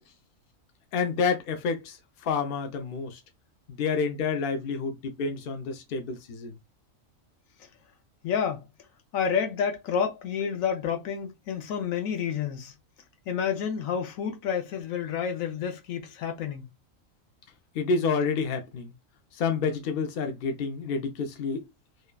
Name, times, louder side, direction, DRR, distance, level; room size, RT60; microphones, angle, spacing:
voice 1, 0.9-3.2 3.7-6.6 17.7-18.9 19.3-21.7, left 5 dB, 55° left, 0.7 m, -29 dB
voice 2, 8.2-8.7 9.1-12.7 13.3-16.6, left 7 dB, 85° left, 1.1 m, -29 dB
3.1 x 2.3 x 2.2 m
omnidirectional pair, 1.4 m